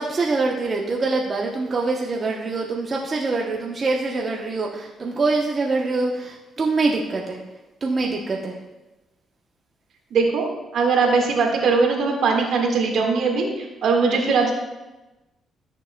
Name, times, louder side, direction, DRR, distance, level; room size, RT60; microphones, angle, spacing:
voice 1, 0.0-7.4 7.8-8.6, right 3 dB, 35° right, -1 dB, 0.8 m, -24 dB
voice 2, 10.1-10.5 10.7-14.5, right 4 dB, 70° right, 1 dB, 1.6 m, -20 dB
13.5 x 6.9 x 2.2 m, 1.1 s
cardioid pair, 90°, 0 cm